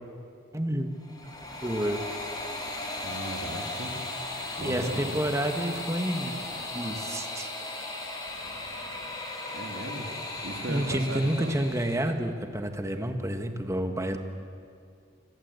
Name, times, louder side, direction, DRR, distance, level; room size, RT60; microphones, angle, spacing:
voice 1, 0.5-0.9 1.6-2.0 4.6-6.3 6.7-7.5 10.7-14.2, right 1 dB, 15° right, 6 dB, 1.6 m, -29 dB
sound 1, 0.9-12.1, left 2 dB, 20° left, 4.0 m, -37 dB
Gunshot gunfire, 1.2-3.7 4.2-5.6 6.3-7.4 8.3-9.6 10.4-11.6, right 1 dB, 50° right, 5.9 m, -53 dB
voice 2, 3.0-4.0 4.6-5.2 9.5-11.6, right 1 dB, 70° right, 2 dB, 3.4 m, -37 dB
27.5 x 21.5 x 8.3 m, 2.3 s
head